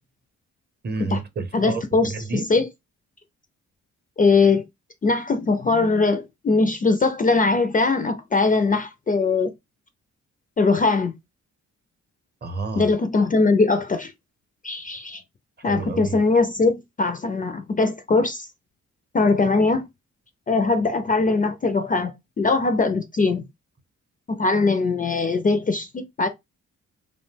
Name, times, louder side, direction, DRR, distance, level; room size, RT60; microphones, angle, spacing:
voice 1, 0.8-2.5 12.4-12.9 15.6-16.2, right 3 dB, 35° right, 0.7 m, -30 dB
voice 2, 1.5-2.1 2.5-2.7 4.2-4.6 5.0-9.5 10.6-11.1 12.8-14.1 14.6-15.2 15.6-18.5 19.1-19.8 20.5-23.4 24.4-26.3, left 3 dB, 30° left, 0.4 m, -21 dB
2.6 x 2.1 x 3.2 m
cardioid pair, 80°, 31 cm